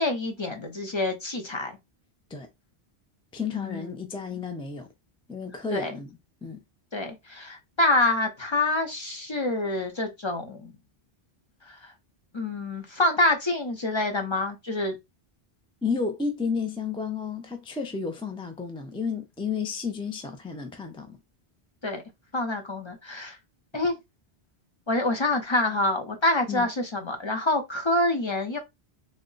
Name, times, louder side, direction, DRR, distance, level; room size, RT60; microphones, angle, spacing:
voice 1, 0.0-1.7 3.5-3.9 4.3-4.4 5.7-5.9 6.9-10.7 11.7-11.8 12.3-15.0 21.8-22.0 22.3-23.4 23.7-23.9 24.9-28.6, left 2 dB, 30° left, 0.7 m, -26 dB
voice 2, 3.3-4.9 5.3-6.6 15.8-21.2 26.5-26.7, left 5 dB, 10° left, 0.3 m, -32 dB
3.5 x 2.1 x 3.8 m
omnidirectional pair, 1.1 m